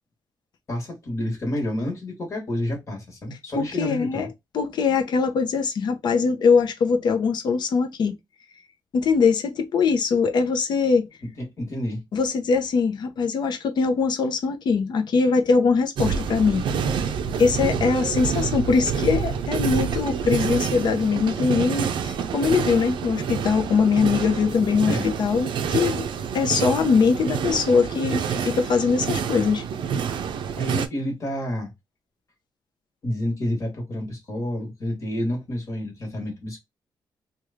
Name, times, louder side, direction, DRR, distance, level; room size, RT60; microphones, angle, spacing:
voice 1, 0.7-4.3 11.6-12.0 24.9-25.1 30.5-31.7 33.0-36.6, left 1 dB, 40° left, 1.3 m, -29 dB
voice 2, 3.6-4.3 4.5-8.1 8.9-11.1 12.1-16.6 17.4-26.1 26.3-29.6, left 5 dB, 65° left, 0.6 m, -22 dB
sound 1, 16.0-30.9, right 7 dB, 80° right, 0.4 m, -27 dB
3.1 x 2.3 x 3.5 m
wide cardioid pair, 160°, 8 cm